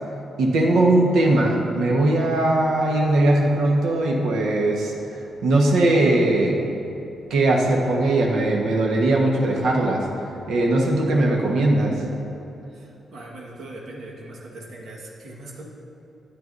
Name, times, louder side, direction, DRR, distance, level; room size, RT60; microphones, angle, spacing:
voice 1, 0.4-4.9 5.4-6.6 7.3-10.1 10.5-12.0, right 2 dB, 85° right, -1 dB, 1.3 m, -19 dB
voice 2, 12.7-15.6, right 2 dB, 65° right, -3 dB, 1.5 m, -40 dB
12.5 x 9.2 x 2.6 m, 2.9 s
wide cardioid pair, 170°, 0 cm